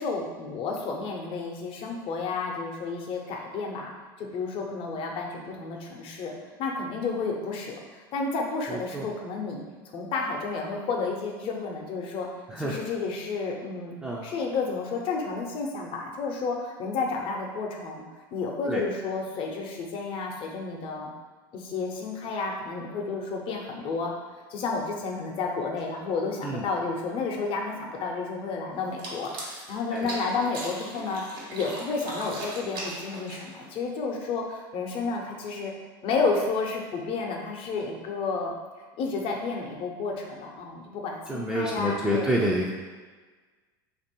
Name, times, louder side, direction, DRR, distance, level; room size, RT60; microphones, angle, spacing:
voice 1, 0.0-3.9 4.2-6.3 6.6-12.3 12.6-13.9 14.2-18.0 18.3-21.1 21.5-24.1 24.5-31.2 31.5-35.7 36.0-38.5 39.0-42.3, left 4 dB, 50° left, 0 dB, 0.7 m, -31 dB
voice 2, 8.7-9.1 12.5-12.8 14.0-14.3 18.6-18.8 26.4-26.6 29.9-30.2 41.3-42.7, equal, 5° right, -5 dB, 0.4 m, -28 dB
sound 1, 28.8-33.7, right 2 dB, 80° right, 1.2 m, -39 dB
2.9 x 2.6 x 4.4 m, 1.4 s
supercardioid pair, 105°, 12 cm